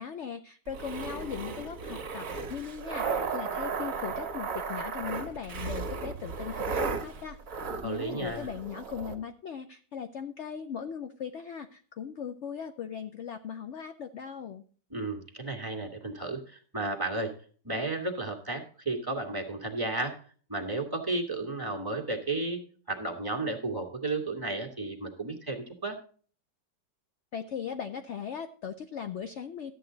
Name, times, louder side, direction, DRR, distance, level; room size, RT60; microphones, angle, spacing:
voice 1, 0.0-7.4 7.8-14.6 27.3-29.7, left 7 dB, 70° left, 9 dB, 0.6 m, -38 dB
sound 1, 0.7-9.2, right 5 dB, 50° right, 1.7 m, -35 dB
voice 2, 7.8-8.5 14.9-17.3 17.6-20.2 20.5-22.6 22.9-26.0, right 2 dB, 15° right, -1 dB, 1.6 m, -33 dB
13.0 x 8.7 x 3.8 m, 0.43 s
omnidirectional pair, 1.9 m